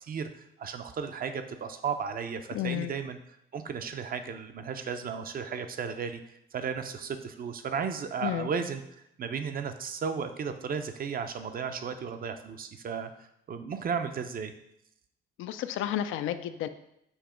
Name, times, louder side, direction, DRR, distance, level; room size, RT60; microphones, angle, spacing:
voice 1, 0.0-3.2 3.5-6.2 6.5-8.8 9.2-13.1 13.5-14.5, right 6 dB, 45° right, 8 dB, 0.6 m, -34 dB
voice 2, 2.5-2.9 8.2-8.5 15.4-16.7, left 11 dB, 85° left, 11 dB, 0.5 m, -31 dB
7.1 x 2.9 x 5.0 m, 0.81 s
cardioid pair, 90°, 20 cm